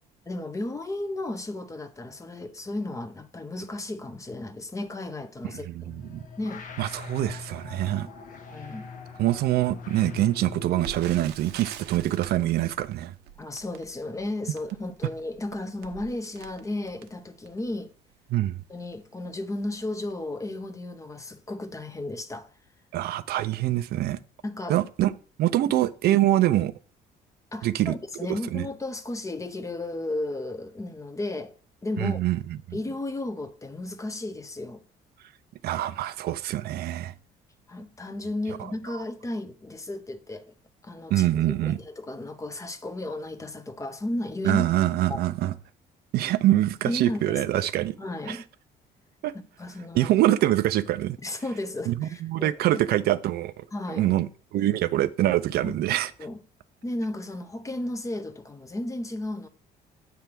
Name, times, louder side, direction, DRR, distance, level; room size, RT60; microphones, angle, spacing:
voice 1, 0.3-5.7 6.4-6.7 8.5-8.9 13.4-17.9 18.7-22.5 24.4-24.8 27.5-31.5 31.8-32.2 32.7-34.8 37.7-40.5 40.8-41.3 41.6-44.6 45.1-45.2 46.9-47.7 48.0-48.4 49.6-50.1 51.2-52.8 53.7-54.1 55.6-55.7 56.2-56.4 56.8-59.5, left 2 dB, 20° left, 0.9 m, -34 dB
voice 2, 5.4-6.2 6.8-8.1 9.2-13.1 18.3-18.6 22.9-24.2 24.7-25.1 25.4-26.7 27.6-28.0 28.3-28.7 32.0-32.4 32.7-32.8 35.6-37.1 41.1-41.8 44.4-45.5 46.1-47.9 48.3-48.4 49.2-49.3 49.9-51.2 51.9-53.7 53.9-54.3 54.5-56.1, right 14 dB, 70° right, 0.6 m, -24 dB
sound 1, 5.7-11.3, left 5 dB, 50° left, 1.3 m, -41 dB
Crackle, 10.8-17.7 18.3-18.4 18.8-19.0 19.6-19.8 20.1-20.2, right 10 dB, 85° right, 0.9 m, -45 dB
8.5 x 3.4 x 6.1 m
cardioid pair, 110°, 17 cm